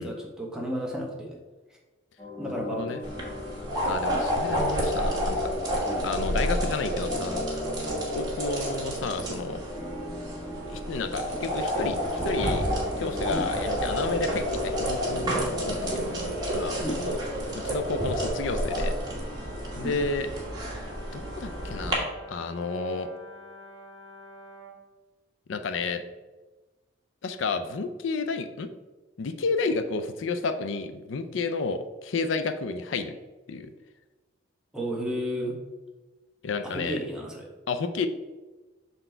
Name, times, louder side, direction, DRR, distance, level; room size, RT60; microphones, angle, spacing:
voice 1, 0.0-1.4 2.4-3.1 5.8-6.0 13.3-13.5 16.8-17.0 19.8-20.1 34.7-35.5 36.6-37.5, equal, 5° right, -2 dB, 1.1 m, -33 dB
sound 1, 2.2-16.4, left 2 dB, 15° left, 1.6 m, -39 dB
voice 2, 2.7-3.0 3.8-5.5 6.0-7.4 7.8-9.6 10.7-12.7 13.0-16.0 16.5-17.2 17.6-18.9 19.8-20.3 21.1-23.1 25.5-26.0 27.2-28.7 29.2-33.2 33.5-33.7 36.4-37.0 37.7-38.1, left 4 dB, 70° left, 9 dB, 0.4 m, -31 dB
sound 2, 3.0-21.9, equal, 20° right, 1.7 m, -30 dB
Brass instrument, 20.5-24.9, right 1 dB, 70° right, 1.7 m, -47 dB
6.6 x 4.1 x 4.4 m, 1.2 s
head